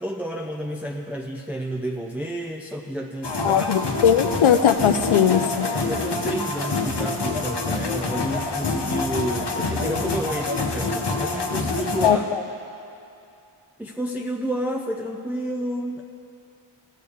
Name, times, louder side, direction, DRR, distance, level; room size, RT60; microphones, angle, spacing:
voice 1, 0.0-3.7 5.6-12.2 13.8-16.0, right 1 dB, 5° right, 1 dB, 0.5 m, -30 dB
sound 1, 3.2-12.1, left 3 dB, 55° left, 1.0 m, -26 dB
voice 2, 3.4-5.7 12.0-12.4, left 8 dB, 70° left, 10 dB, 0.6 m, -19 dB
16.0 x 6.6 x 3.5 m, 2.7 s
wide cardioid pair, 45°, 49 cm